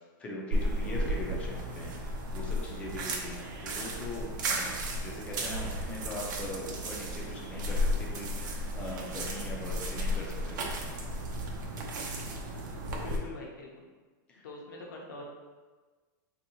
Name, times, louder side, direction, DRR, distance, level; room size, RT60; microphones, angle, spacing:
voice 1, 0.2-4.8 5.0-10.8 14.3-14.5, left 1 dB, 10° left, -2 dB, 0.4 m, -41 dB
sound 1, 0.5-13.2, equal, 65° right, 0.6 m, -34 dB
voice 2, 13.0-13.9 14.4-15.2, left 2 dB, 70° left, -2 dB, 0.8 m, -44 dB
3.4 x 2.7 x 2.8 m, 1.3 s
supercardioid pair, 170°, 11 cm